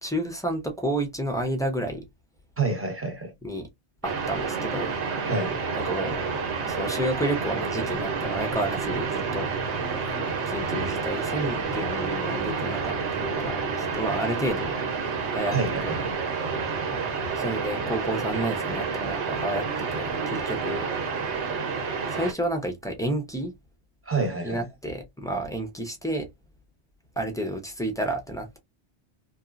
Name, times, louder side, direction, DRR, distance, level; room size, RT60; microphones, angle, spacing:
voice 1, 0.0-2.0 3.4-3.7 4.0-4.9 5.7-6.2 6.6-9.5 10.5-14.8 15.3-15.5 15.8-16.0 17.3-20.9 22.1-23.5 24.4-26.3 27.2-28.6, right 1 dB, 5° left, 0.4 m, -30 dB
voice 2, 2.6-3.3 5.3-5.6 15.5-16.0 24.0-24.6, right 3 dB, 15° right, 0.8 m, -27 dB
sound 1, 4.0-22.3, right 5 dB, 90° right, 1.1 m, -29 dB
2.9 x 2.2 x 2.4 m
omnidirectional pair, 1.1 m